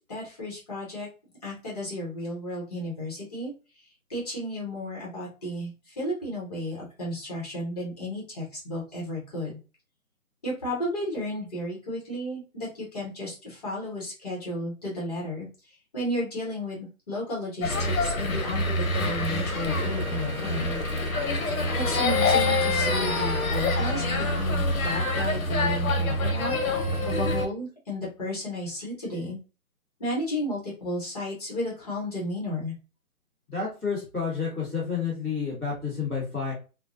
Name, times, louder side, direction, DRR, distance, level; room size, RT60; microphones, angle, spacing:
voice 1, 0.1-1.1 1.4-3.5 4.1-9.6 10.4-15.5 15.9-20.8 21.8-26.6 27.0-29.4 30.0-32.7, left 1 dB, 25° left, -4 dB, 0.9 m, -33 dB
sound 1, 17.6-27.5, left 2 dB, 70° left, 0.7 m, -26 dB
sound 2, 18.9-24.4, right 2 dB, 35° right, 1.1 m, -42 dB
voice 2, 33.5-36.5, left 5 dB, 5° right, -25 dB, 0.7 m, -30 dB
2.5 x 2.1 x 2.5 m, 0.33 s
figure-of-eight pair, 150°, 43 cm